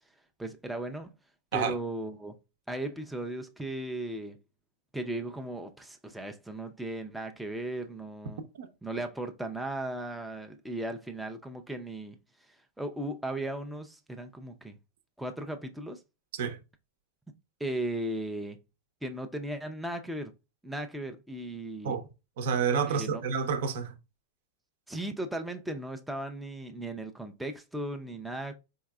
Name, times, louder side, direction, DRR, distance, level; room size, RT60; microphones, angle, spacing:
voice 1, 0.4-1.1 1.5-2.3 2.7-4.4 4.9-8.4 8.8-12.2 12.5-14.8 15.2-16.0 17.6-18.6 19.0-20.3 20.6-22.0 22.9-23.2 24.9-28.5, right 1 dB, 5° right, 0.4 m, -36 dB
voice 2, 22.4-23.9, right 6 dB, 70° right, 0.8 m, -29 dB
3.9 x 3.7 x 2.2 m
supercardioid pair, 145°, 0 cm